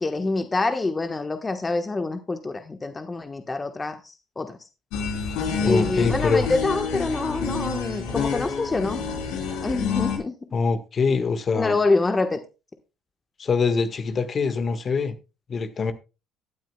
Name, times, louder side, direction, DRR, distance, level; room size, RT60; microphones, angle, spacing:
voice 1, 0.0-4.6 5.6-9.0 9.6-10.3 11.5-12.4, left 3 dB, 25° left, 1.2 m, -26 dB
sound 1, 4.9-10.2, left 5 dB, 80° left, 3.4 m, -28 dB
voice 2, 5.6-6.5 10.5-11.8 13.4-15.2 15.5-15.9, left 5 dB, 45° left, 1.5 m, -24 dB
17.0 x 9.3 x 2.3 m
supercardioid pair, 70°, 0 cm